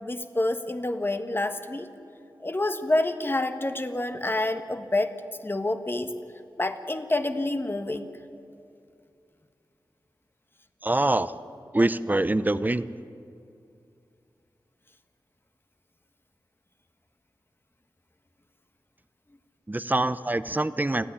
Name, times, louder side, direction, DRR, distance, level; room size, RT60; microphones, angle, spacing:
voice 1, 0.0-1.9 2.4-5.1 5.4-6.1 6.6-8.1, left 2 dB, 30° left, 8 dB, 1.4 m, -28 dB
voice 2, 10.8-11.3 11.7-12.8 19.7-21.0, right 2 dB, 20° right, 14 dB, 0.7 m, -24 dB
29.0 x 10.0 x 10.0 m, 2.5 s
wide cardioid pair, 60°, 8 cm